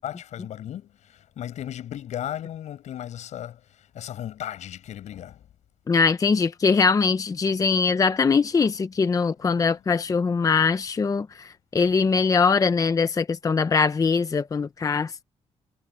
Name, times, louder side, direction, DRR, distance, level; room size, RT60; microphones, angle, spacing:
voice 1, 0.0-5.5, left 11 dB, 80° left, 6.6 m, -36 dB
voice 2, 5.9-15.2, left 5 dB, 30° left, 0.7 m, -22 dB
cardioid pair, 115°, 12 cm